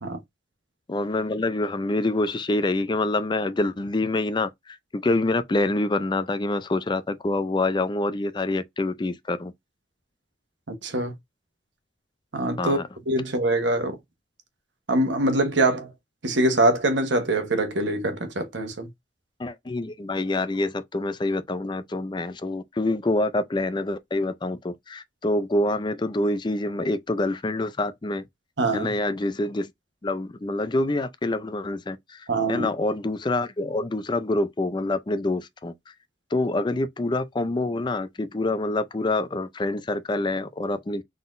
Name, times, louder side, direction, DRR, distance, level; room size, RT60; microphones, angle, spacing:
voice 1, 0.9-9.5 12.6-12.9 19.4-28.2 28.7-29.7 30.0-35.7 36.3-41.0, left 2 dB, 25° left, 0.4 m, -26 dB
voice 2, 10.7-11.1 12.3-12.8 13.1-14.0 14.9-15.9 16.2-18.9 28.6-28.9 32.3-32.7, right 2 dB, 80° right, 1.1 m, -23 dB
3.9 x 3.8 x 2.5 m
head